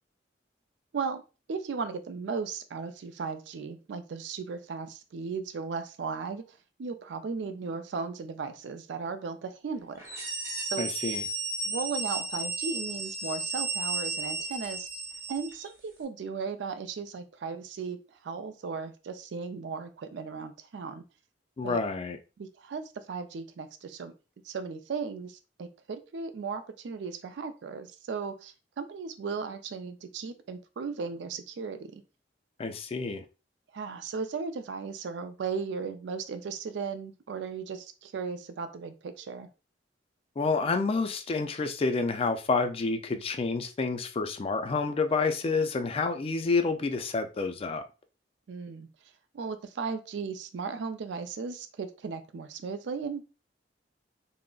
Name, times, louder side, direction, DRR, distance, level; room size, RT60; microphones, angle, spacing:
voice 1, 1.5-6.4 6.8-10.0 10.7-10.9 11.6-14.9 15.3-21.0 21.6-21.8 22.4-24.1 24.4-32.0 33.7-39.5 48.5-48.9 49.3-53.2, right 5 dB, 75° right, 0.4 m, -36 dB
sound 1, 10.0-15.7, right 3 dB, 15° right, 0.9 m, -34 dB
voice 2, 10.8-11.3 21.6-22.2 32.6-33.2 40.4-47.8, left 4 dB, 35° left, 0.3 m, -29 dB
3.6 x 2.0 x 2.3 m
head